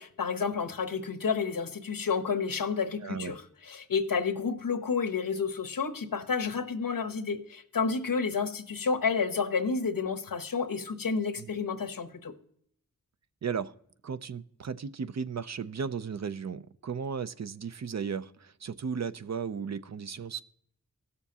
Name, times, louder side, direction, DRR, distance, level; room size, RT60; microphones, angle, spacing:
voice 1, 0.0-12.3, left 5 dB, 80° left, 0.9 m, -30 dB
voice 2, 3.0-3.3 11.4-11.5 13.4-13.7 14.0-20.4, right 6 dB, 55° right, 0.5 m, -35 dB
17.0 x 7.0 x 2.8 m
wide cardioid pair, 55°, 34 cm